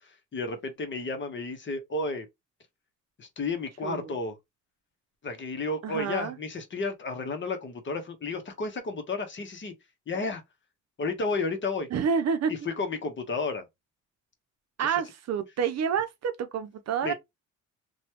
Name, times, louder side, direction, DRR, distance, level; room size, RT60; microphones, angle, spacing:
voice 1, 0.0-2.3 3.2-4.4 5.2-9.7 10.1-10.4 11.0-11.9 12.7-13.6 17.0-17.1, left 3 dB, 40° left, 1.0 m, -32 dB
voice 2, 3.8-4.1 5.8-6.4 11.9-12.5 14.8-17.1, right 7 dB, 60° right, 0.6 m, -28 dB
3.0 x 2.3 x 2.9 m
cardioid pair, 90°, 30 cm